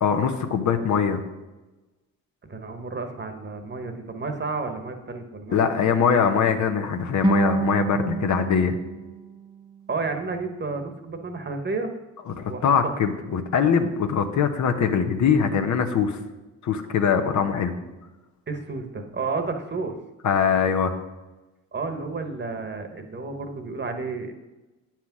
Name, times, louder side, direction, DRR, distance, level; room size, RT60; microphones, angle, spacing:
voice 1, 0.0-1.2 5.5-8.8 12.4-16.2 16.6-17.7 20.2-20.9, left 6 dB, 60° left, 6 dB, 1.0 m, -22 dB
voice 2, 2.4-6.0 9.9-11.9 12.4-12.9 18.5-20.0 21.7-24.3, right 4 dB, 35° right, 6 dB, 1.2 m, -31 dB
sound 1, 7.2-10.3, right 6 dB, 15° right, 0.5 m, -28 dB
8.4 x 6.0 x 6.0 m, 1.1 s
cardioid pair, 75°, 33 cm